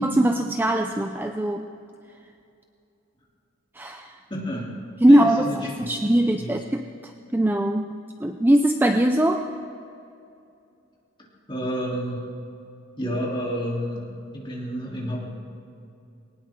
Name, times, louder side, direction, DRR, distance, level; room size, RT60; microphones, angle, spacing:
voice 1, 0.0-1.7 3.8-4.2 5.0-8.0 8.2-9.5, right 1 dB, 10° right, 5 dB, 0.5 m, -21 dB
voice 2, 4.3-4.7 5.1-6.5 11.5-12.3 13.0-15.2, equal, 25° left, -4 dB, 3.3 m, -30 dB
20.5 x 18.5 x 3.7 m, 2.6 s
head